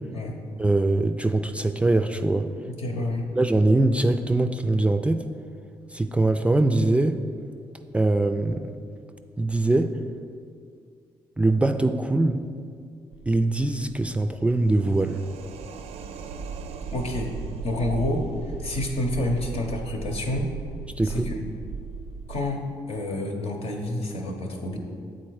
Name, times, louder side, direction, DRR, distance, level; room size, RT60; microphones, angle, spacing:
voice 1, 0.6-2.5 3.4-5.2 5.9-7.2 7.9-8.7 9.4-9.9 11.4-12.4 13.3-15.2 21.0-21.3, right 2 dB, 10° right, 8 dB, 0.4 m, -22 dB
voice 2, 2.6-3.3 16.9-17.3 17.6-18.3 18.6-20.5 21.0-21.5 22.3-24.8, left 1 dB, 65° left, 2 dB, 1.0 m, -29 dB
sound 1, 13.1-22.5, right 5 dB, 75° right, 0.4 m, -37 dB
7.5 x 4.0 x 4.8 m, 2.2 s
hypercardioid pair, 50°, 11 cm